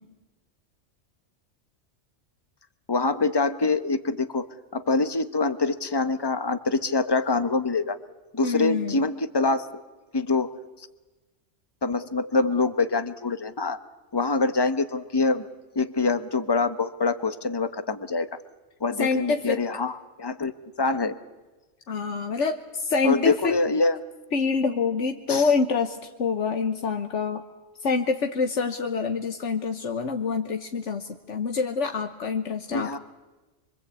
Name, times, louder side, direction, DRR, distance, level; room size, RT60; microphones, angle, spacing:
voice 1, 2.9-4.5 4.7-8.0 8.3-9.8 10.1-10.5 11.8-13.8 14.1-15.5 15.7-18.3 18.8-20.5 20.8-21.2 23.0-24.0 25.3-25.5 32.7-33.0, left 3 dB, 20° left, 10 dB, 1.1 m, -25 dB
voice 2, 8.4-9.0 19.0-19.6 21.9-23.5 24.3-27.4 27.8-33.0, left 5 dB, 85° left, 6 dB, 1.5 m, -26 dB
26.0 x 24.5 x 8.4 m, 1.2 s
omnidirectional pair, 1.2 m